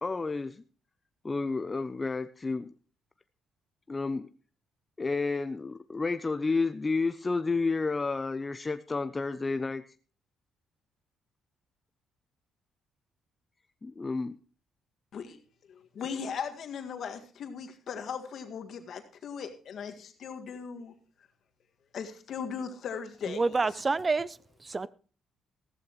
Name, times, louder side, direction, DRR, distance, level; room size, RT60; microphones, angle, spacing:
voice 1, 0.0-0.6 1.2-2.7 3.9-4.3 5.0-9.8 13.8-14.4, left 3 dB, 25° left, 0.5 m, -31 dB
voice 2, 15.7-20.9 21.9-23.8, left 6 dB, 65° left, 1.8 m, -38 dB
voice 3, 23.3-24.9, right 3 dB, 30° right, 0.5 m, -28 dB
15.0 x 14.0 x 3.0 m
cardioid pair, 90°, 0 cm